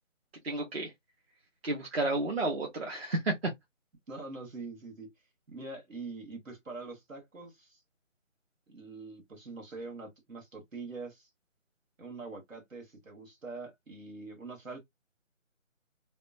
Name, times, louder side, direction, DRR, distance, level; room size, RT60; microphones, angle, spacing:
voice 1, 0.4-0.9 1.6-3.5, right 2 dB, 50° right, 0.9 m, -31 dB
voice 2, 4.1-5.1 5.5-7.8 8.7-11.3 12.0-14.8, right 3 dB, 80° right, 1.7 m, -44 dB
2.9 x 2.1 x 2.5 m
figure-of-eight pair, 160°, 39 cm